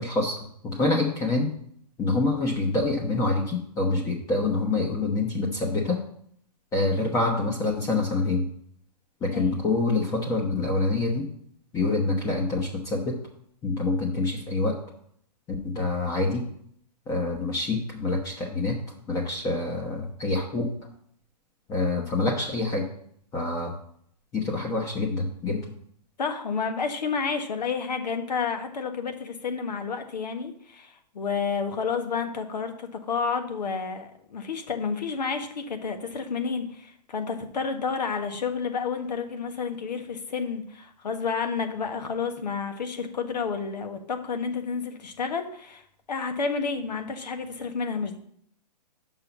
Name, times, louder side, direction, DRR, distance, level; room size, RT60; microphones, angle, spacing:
voice 1, 0.0-1.5 2.0-6.0 6.7-8.5 9.2-11.3 11.7-13.2 13.6-14.8 15.6-16.4 17.1-18.8 19.1-20.7 21.7-22.9 23.3-23.7 24.3-25.6, left 2 dB, 15° left, 0 dB, 0.9 m, -26 dB
voice 2, 26.2-45.8 46.1-48.2, left 5 dB, 75° left, 7 dB, 1.4 m, -30 dB
5.7 x 5.6 x 6.9 m, 0.68 s
hypercardioid pair, 140°, 21 cm